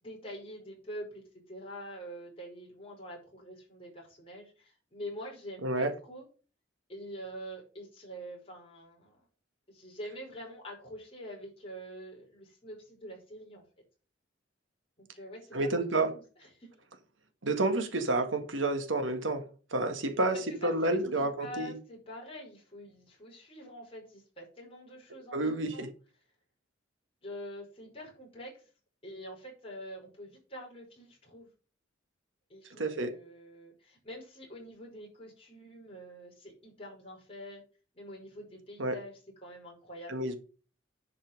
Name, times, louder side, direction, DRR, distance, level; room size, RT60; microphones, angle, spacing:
voice 1, 0.0-6.2 6.9-9.2 9.7-13.6 15.0-15.7 16.0-16.7 20.3-25.9 27.2-28.7 29.0-31.5 32.5-37.6 37.9-40.2, equal, 30° left, 5.4 m, -46 dB
voice 2, 5.6-5.9 15.5-16.1 17.4-21.7 25.3-25.9 32.8-33.1 38.8-39.0 40.1-40.4, right 2 dB, 90° right, 1.8 m, -30 dB
10.5 x 5.7 x 5.3 m
head